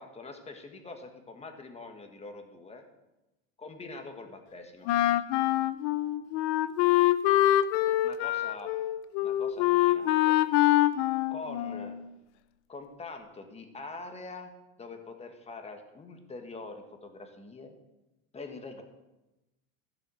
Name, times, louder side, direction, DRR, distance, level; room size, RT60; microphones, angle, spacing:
voice 1, 0.0-2.8 3.6-4.9 8.0-8.7 9.2-10.7 11.3-12.0 12.7-14.5 14.8-17.7 18.3-18.8, left 3 dB, 15° left, 6 dB, 1.5 m, -44 dB
Wind instrument woodwind instrument, 4.9-12.1, left 14 dB, 60° left, 0.7 m, -25 dB
14.5 x 6.8 x 6.4 m, 1.0 s
supercardioid pair, 130°, 40 cm